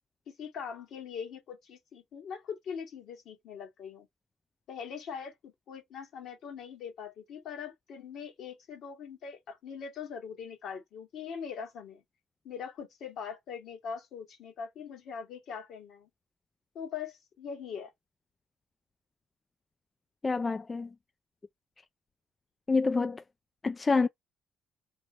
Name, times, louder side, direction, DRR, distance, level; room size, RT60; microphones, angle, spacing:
voice 1, 0.3-4.1 4.7-12.0 12.4-16.1 16.8-17.9, left 6 dB, 70° left, 1.7 m, -42 dB
voice 2, 20.2-20.9 22.7-23.2 23.6-24.1, left 4 dB, 35° left, 0.3 m, -27 dB
3.3 x 2.8 x 4.1 m
supercardioid pair, 55°, 0 cm